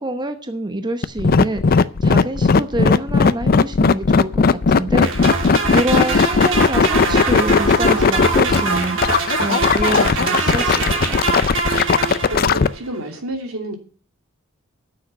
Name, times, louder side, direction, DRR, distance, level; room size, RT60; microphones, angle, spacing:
voice 1, 0.0-5.4 5.7-11.2, right 1 dB, 20° right, 7 dB, 0.9 m, -26 dB
sound 1, 1.0-12.7, left 5 dB, 45° left, 0.5 m, -16 dB
sound 2, 5.0-12.8, right 4 dB, 65° right, 2.6 m, -23 dB
voice 2, 12.3-13.8, right 2 dB, 90° right, 3 dB, 2.8 m, -29 dB
9.4 x 7.0 x 9.0 m, 0.43 s
head